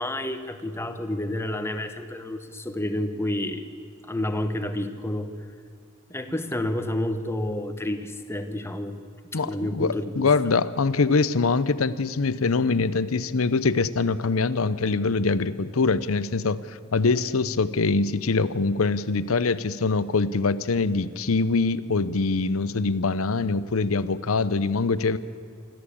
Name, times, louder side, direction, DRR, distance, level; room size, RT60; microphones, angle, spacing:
voice 1, 0.0-3.6 4.1-5.3 6.1-9.0 9.4-10.3, left 1 dB, 10° left, 8 dB, 1.2 m, -29 dB
voice 2, 9.3-25.2, left 4 dB, 75° left, 16 dB, 0.7 m, -24 dB
25.5 x 14.0 x 8.5 m, 2.1 s
head